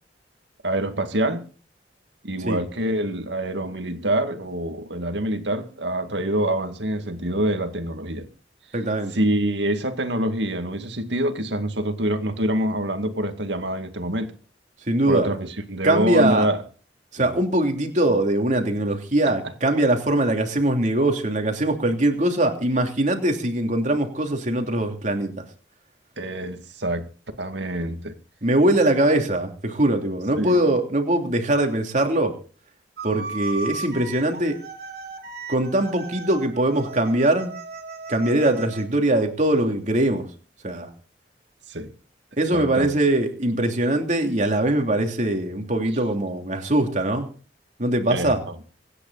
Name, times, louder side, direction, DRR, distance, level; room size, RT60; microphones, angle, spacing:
voice 1, 0.6-1.5 2.2-8.3 9.1-14.3 15.1-16.6 17.2-17.3 19.2-19.5 26.2-27.1 27.4-28.1 30.4-30.6 41.7-41.9 42.5-42.9 48.1-48.5, right 1 dB, 90° right, 2.2 m, -26 dB
voice 2, 8.7-9.1 14.9-15.3 15.8-16.5 17.1-25.4 28.4-32.3 33.0-34.6 35.5-37.5 38.1-40.3 40.6-40.9 42.4-47.3 47.8-48.4, right 1 dB, 45° right, 3.1 m, -22 dB
sound 1, 33.0-38.9, right 3 dB, 60° right, 3.1 m, -36 dB
25.5 x 10.0 x 4.2 m
head